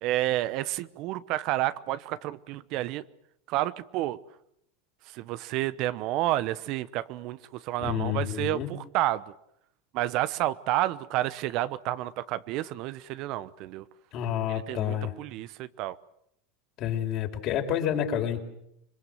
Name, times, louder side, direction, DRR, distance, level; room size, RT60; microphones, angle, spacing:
voice 1, 0.0-3.0 3.5-4.2 5.1-9.2 9.9-13.8 14.5-15.9, right 15 dB, 55° right, 15 dB, 1.0 m, -30 dB
voice 2, 7.8-8.7 14.1-15.1 16.8-18.4, left 10 dB, 50° left, 3 dB, 4.7 m, -29 dB
26.5 x 22.0 x 7.8 m, 0.75 s
hypercardioid pair, 105°, 0 cm